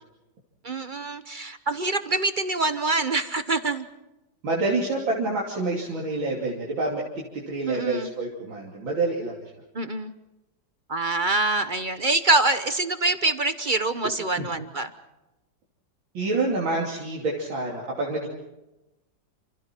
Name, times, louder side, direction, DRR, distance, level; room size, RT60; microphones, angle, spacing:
voice 1, 0.6-3.9 7.7-8.1 9.7-10.1 10.9-14.9, right 2 dB, 35° right, 11 dB, 0.8 m, -25 dB
voice 2, 4.4-9.4 14.4-14.5 16.1-18.3, right 2 dB, 80° right, -3 dB, 3.8 m, -27 dB
29.5 x 27.5 x 4.5 m, 0.98 s
omnidirectional pair, 2.1 m